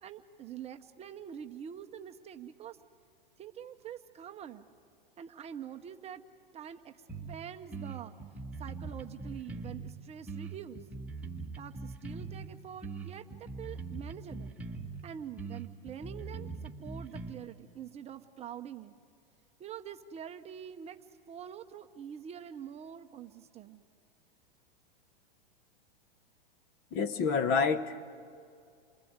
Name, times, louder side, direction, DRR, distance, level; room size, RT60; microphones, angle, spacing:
voice 1, 0.0-2.8 3.4-4.7 5.2-6.3 6.5-8.1 8.6-10.8 11.6-14.5 15.0-18.9 19.6-23.8, right 9 dB, 20° right, 6 dB, 0.8 m, -45 dB
sound 1, 7.1-7.4 7.7-9.9 10.3-12.5 12.8-15.0 15.4-17.3, right 4 dB, 5° right, 1.6 m, -41 dB
voice 2, 26.9-28.0, left 5 dB, 35° left, 11 dB, 1.2 m, -28 dB
28.5 x 20.5 x 8.0 m, 2.3 s
hypercardioid pair, 125°, 29 cm